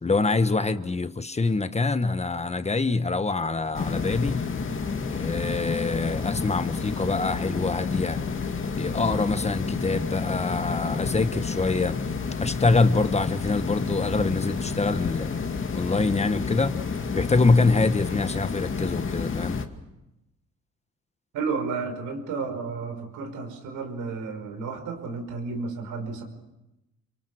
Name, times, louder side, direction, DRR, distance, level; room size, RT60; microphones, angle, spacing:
voice 1, 0.0-4.4 5.1-8.2 8.8-12.0 12.4-15.3 15.7-16.8 17.1-19.6, left 3 dB, 20° left, 11 dB, 1.3 m, -25 dB
sound 1, 3.7-19.6, left 5 dB, 40° left, 2.4 m, -30 dB
voice 2, 21.3-26.2, right 4 dB, 90° right, 5 dB, 5.6 m, -32 dB
29.5 x 24.5 x 6.4 m, 0.93 s
cardioid pair, 90°, 30 cm